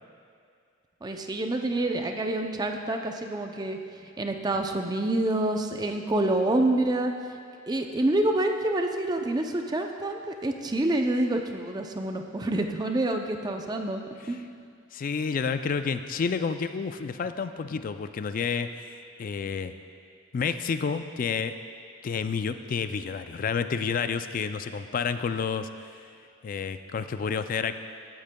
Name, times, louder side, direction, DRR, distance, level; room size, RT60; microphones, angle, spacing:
voice 1, 1.0-3.8 4.2-7.1 7.7-14.0 14.3-14.4, right 1 dB, 20° right, 4 dB, 0.5 m, -27 dB
voice 2, 14.9-19.7 20.3-21.5 22.0-25.7 26.4-27.7, left 5 dB, 40° left, 10 dB, 0.3 m, -30 dB
15.5 x 8.6 x 2.2 m, 2.3 s
head